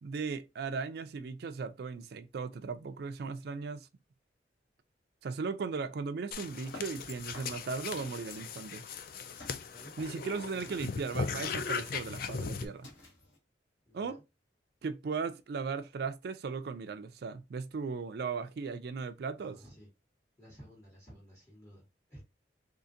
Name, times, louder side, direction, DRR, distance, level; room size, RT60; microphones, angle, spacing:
voice 1, 0.0-3.9 5.2-8.8 10.0-12.9 13.9-14.2 14.8-19.6, right 5 dB, 60° right, 0.4 m, -37 dB
sound 1, 6.3-12.7, left 5 dB, 50° left, 0.4 m, -38 dB
sound 2, 6.4-13.4, left 1 dB, 90° left, 1.4 m, -52 dB
voice 2, 13.9-14.2 19.4-19.9 20.4-22.2, equal, 15° left, 1.4 m, -54 dB
3.7 x 2.5 x 2.6 m
head